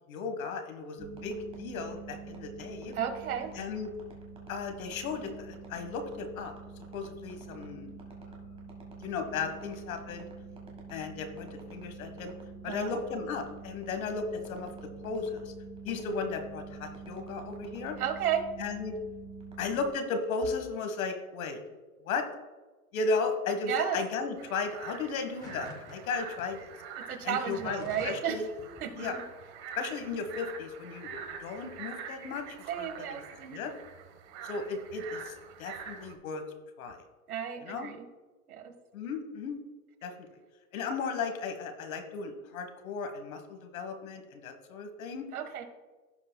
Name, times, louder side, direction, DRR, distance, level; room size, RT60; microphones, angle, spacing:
voice 1, 0.1-2.9 3.5-3.9 4.5-6.5 6.9-7.9 9.0-10.3 10.9-12.3 12.6-15.5 15.8-18.0 18.6-19.0 19.6-21.6 22.0-22.2 22.9-26.7 27.2-28.5 28.9-29.1 29.8-33.2 33.5-33.7 34.4-35.3 35.6-36.5 36.8-37.0 37.6-37.9 38.9-39.6 40.0-40.1 40.7-45.3, left 4 dB, 70° left, 7 dB, 1.5 m, -35 dB
sound 1, 1.0-19.9, right 4 dB, 15° right, 1.4 m, -46 dB
voice 2, 2.9-3.5 12.6-12.9 18.0-18.4 23.6-24.0 27.1-28.5 28.8-28.9 32.7-33.7 37.3-38.1 38.5-38.7 45.3-45.6, right 9 dB, 80° right, 7 dB, 1.5 m, -33 dB
sound 2, 24.4-36.2, right 7 dB, 45° right, 1.3 m, -45 dB
sound 3, 25.4-26.0 26.4-26.5 27.3-28.3 28.6-28.9, left 1 dB, 10° left, 0.4 m, -48 dB
15.5 x 5.4 x 2.2 m, 1.3 s
hypercardioid pair, 140°, 43 cm